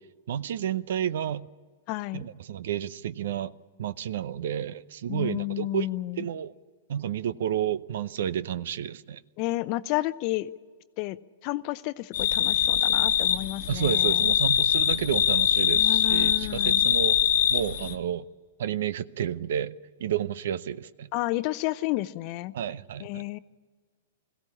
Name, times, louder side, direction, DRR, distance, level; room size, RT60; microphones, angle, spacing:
voice 1, 0.3-1.5 2.1-3.5 3.8-5.9 6.2-6.5 6.9-9.2 13.7-17.2 17.5-18.2 18.6-19.7 20.0-21.1 22.5-23.2, right 10 dB, 65° right, 0.7 m, -30 dB
voice 2, 1.9-2.3 5.1-6.3 9.4-10.5 11.0-11.2 11.4-14.3 15.7-16.9 21.1-22.5 23.0-23.4, left 18 dB, 45° left, 0.7 m, -31 dB
sound 1, 12.1-17.9, left 10 dB, 65° left, 1.3 m, -23 dB
21.5 x 16.0 x 10.0 m
hypercardioid pair, 115°, 0 cm